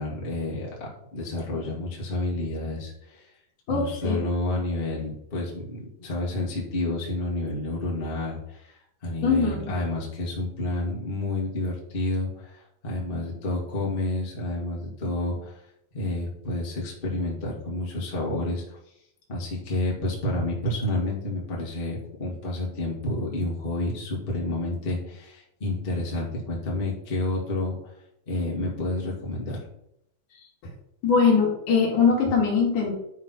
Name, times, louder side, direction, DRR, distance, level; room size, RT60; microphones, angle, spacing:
voice 1, 0.0-3.3 3.7-15.6 15.9-18.8 19.3-27.9 28.3-29.6, left 2 dB, 20° left, -4 dB, 1.6 m, -30 dB
voice 2, 3.7-4.2 9.2-9.7 30.6-30.7 31.0-33.0, left 5 dB, 65° left, -1 dB, 3.1 m, -22 dB
10.5 x 4.1 x 5.8 m, 0.79 s
omnidirectional pair, 4.1 m